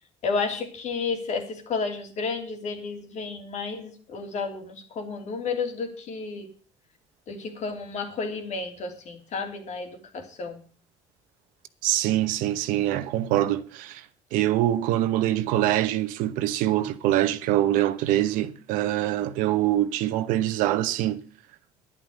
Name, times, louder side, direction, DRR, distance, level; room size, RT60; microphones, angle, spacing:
voice 1, 0.2-6.5 7.3-10.6, left 4 dB, 60° left, 2.9 m, -32 dB
voice 2, 11.8-14.0 14.3-21.2, right 13 dB, 85° right, 1.0 m, -24 dB
11.0 x 10.5 x 6.4 m
supercardioid pair, 80°, 14 cm